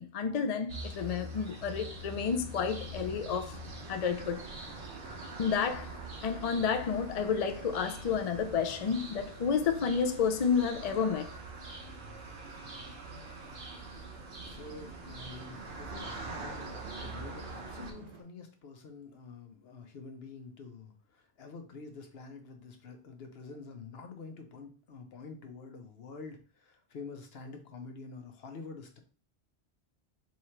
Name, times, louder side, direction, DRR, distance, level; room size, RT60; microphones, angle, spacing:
voice 1, 0.0-3.6 3.9-4.5 5.4-6.0 6.2-11.3, left 6 dB, 50° left, 0.4 m, -30 dB
sound 1, 0.7-17.9, right 1 dB, 65° right, 1.2 m, -44 dB
sound 2, 1.3-18.2, right 4 dB, 90° right, 1.3 m, -54 dB
voice 2, 14.4-29.0, left 4 dB, 70° left, 1.0 m, -47 dB
3.7 x 3.0 x 4.3 m
omnidirectional pair, 1.1 m